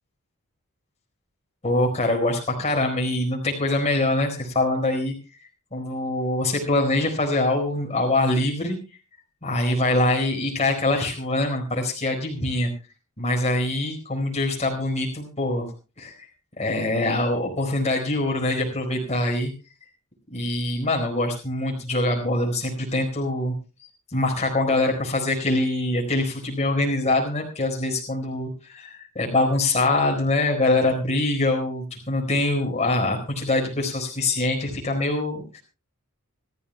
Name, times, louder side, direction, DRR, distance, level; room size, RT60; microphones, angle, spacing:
voice 1, 1.6-5.1 5.7-8.8 9.4-12.7 13.2-15.7 16.0-16.1 16.6-19.5 20.3-23.5 23.8-35.6, left 2 dB, 30° left, 1 dB, 4.4 m, -24 dB
26.5 x 14.0 x 2.2 m, 0.31 s
head